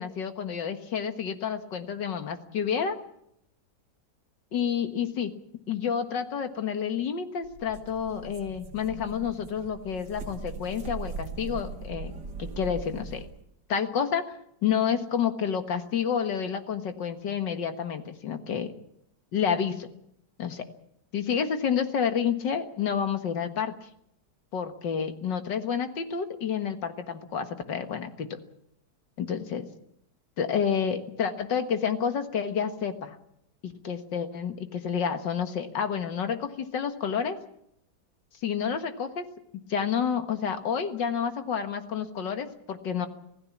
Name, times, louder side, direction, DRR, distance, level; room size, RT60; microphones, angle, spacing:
voice 1, 0.0-3.0 4.5-5.3 5.7-12.1 12.4-13.2 13.7-14.3 14.6-18.7 19.3-19.9 20.4-20.6 21.1-23.9 24.5-28.4 29.2-29.7 30.4-33.2 33.6-37.4 38.4-39.2 39.7-43.1, left 7 dB, 85° left, 8 dB, 2.2 m, -29 dB
sound 1, 7.4-13.4, right 4 dB, 80° right, 2.5 m, -40 dB
26.0 x 17.0 x 7.3 m, 0.77 s
omnidirectional pair, 1.9 m